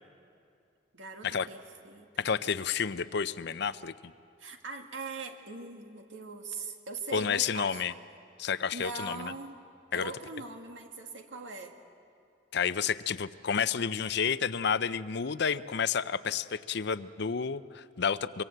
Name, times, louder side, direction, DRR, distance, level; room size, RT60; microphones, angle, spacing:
voice 1, 0.9-1.6 1.8-2.3 4.4-7.8 8.7-9.6 9.9-11.8, right 3 dB, 85° right, 4 dB, 2.0 m, -41 dB
voice 2, 2.2-4.1 7.1-7.9 8.4-9.3 9.9-10.1 12.5-18.4, left 6 dB, 65° left, 14 dB, 0.6 m, -30 dB
24.5 x 24.0 x 7.9 m, 2.6 s
head